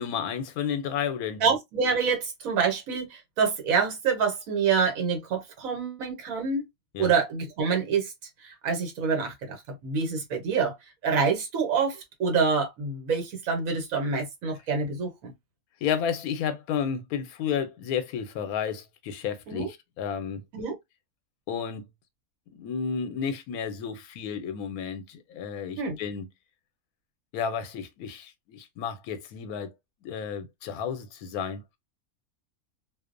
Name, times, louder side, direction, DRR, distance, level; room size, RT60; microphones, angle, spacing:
voice 1, 0.0-1.4 6.9-7.1 15.8-20.4 21.5-21.9 22.5-26.2 27.3-29.7 30.0-31.6, left 7 dB, 90° left, 1.1 m, -32 dB
voice 2, 1.4-6.7 7.0-8.1 8.4-9.6 9.8-10.7 11.0-15.3 19.5-19.7 20.5-20.7 25.8-26.0, right 5 dB, 75° right, 1.2 m, -26 dB
2.7 x 2.0 x 2.4 m
omnidirectional pair, 1.5 m